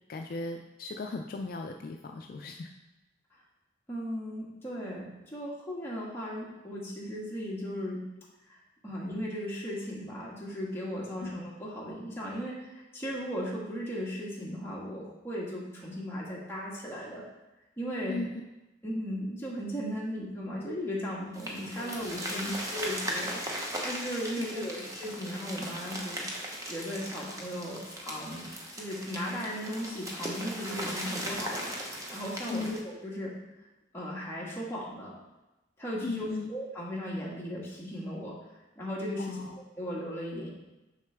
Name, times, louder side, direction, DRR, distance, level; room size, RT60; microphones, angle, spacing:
voice 1, 0.1-2.7 11.2-11.3 18.1-18.3 21.8-22.6 24.4-24.7 32.5-32.8 36.0-36.5 39.2-39.6, left 3 dB, 50° left, 4 dB, 0.3 m, -37 dB
voice 2, 3.9-8.0 8.5-8.6 8.8-17.2 17.8-18.2 18.8-26.2 26.6-28.5 28.7-33.3 33.9-35.2 35.8-38.4 38.8-39.4 39.8-40.5, equal, 15° left, -5 dB, 1.4 m, -36 dB
sound 1, 21.3-32.8, right 1 dB, 20° right, 0.8 m, -38 dB
6.5 x 5.8 x 3.3 m, 1.0 s
head